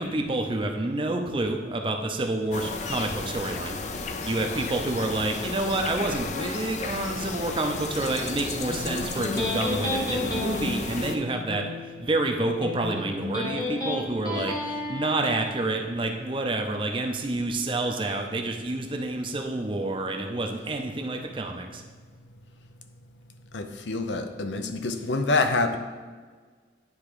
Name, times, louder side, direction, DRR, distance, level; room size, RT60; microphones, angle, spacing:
voice 1, 0.0-21.8, right 2 dB, 25° right, 3 dB, 0.6 m, -29 dB
sound 1, 2.5-11.2, left 4 dB, 40° left, 0.5 m, -34 dB
Electric guitar, 8.7-15.7, left 2 dB, 20° left, 1.0 m, -32 dB
voice 2, 23.5-25.8, left 3 dB, 75° left, 8 dB, 0.6 m, -26 dB
9.7 x 3.6 x 4.9 m, 1.5 s
head